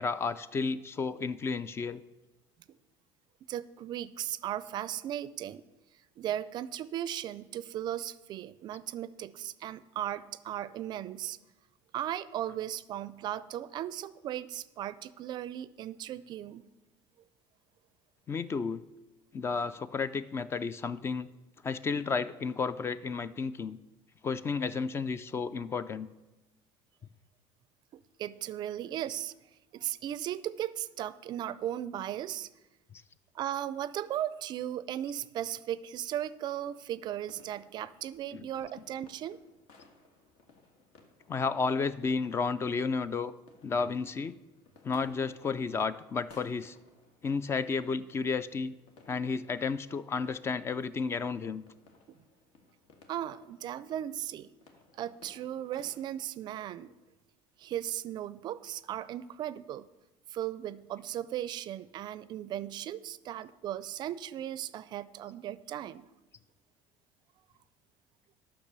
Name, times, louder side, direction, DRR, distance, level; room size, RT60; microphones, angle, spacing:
voice 1, 0.0-2.0 18.3-18.8 19.3-21.3 21.6-23.8 24.2-26.1 32.9-33.0 38.3-38.4 41.3-43.3 43.6-44.4 44.8-46.8 47.2-48.7 49.1-51.6, left 5 dB, 25° left, 15 dB, 0.3 m, -32 dB
voice 2, 3.5-5.6 6.2-11.4 11.9-16.6 27.9-29.3 29.7-32.5 33.3-39.4 52.1-52.2 53.1-54.5 54.9-56.9 57.6-59.9 60.3-66.0, right 11 dB, 45° right, 17 dB, 0.4 m, -37 dB
sound 1, 36.6-56.0, left 3 dB, 65° left, 1.7 m, -61 dB
10.0 x 6.2 x 6.7 m, 1.1 s
cardioid pair, 140°, 10 cm